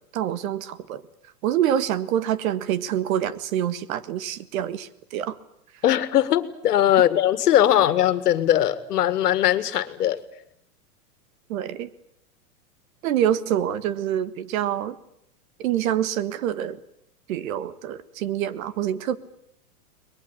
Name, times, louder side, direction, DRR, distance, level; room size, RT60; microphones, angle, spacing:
voice 1, 0.1-1.0 1.4-5.4 11.5-11.9 13.0-15.0 15.6-16.8 17.3-19.2, right 10 dB, 60° right, 15 dB, 1.7 m, -26 dB
voice 2, 5.8-10.2, left 12 dB, 80° left, 14 dB, 2.1 m, -20 dB
22.0 x 21.0 x 9.8 m, 0.75 s
supercardioid pair, 140°, 46 cm